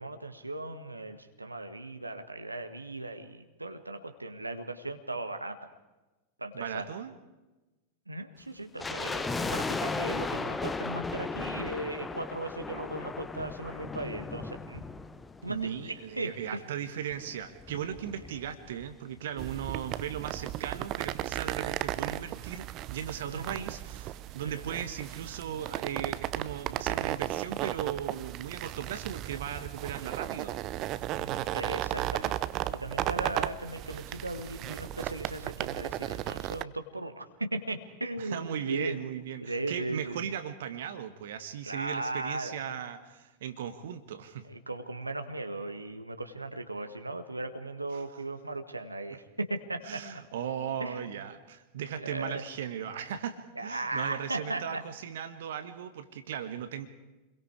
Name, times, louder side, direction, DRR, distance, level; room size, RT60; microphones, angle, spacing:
voice 1, 0.0-5.7 6.4-6.9 8.1-14.8 15.4-16.6 23.3-23.6 24.4-24.8 31.2-32.4 32.7-39.0 39.4-40.3 41.6-42.5 44.4-50.2 50.8-51.2 52.0-52.4 53.5-54.8, right 2 dB, 85° right, 6 dB, 1.7 m, -37 dB
voice 2, 6.5-7.1 15.5-30.6 38.2-44.4 47.9-48.0 49.8-56.9, right 9 dB, 60° right, 10 dB, 1.6 m, -37 dB
sound 1, 8.8-16.1 16.3-16.4 17.1-18.9 19.2-19.3 19.5-19.8 20.2-20.3, left 3 dB, 10° left, 1.1 m, -36 dB
sound 2, 19.4-36.6, right 14 dB, 35° right, 0.7 m, -35 dB
29.0 x 22.5 x 4.8 m, 1.1 s
figure-of-eight pair, 90°, 0 cm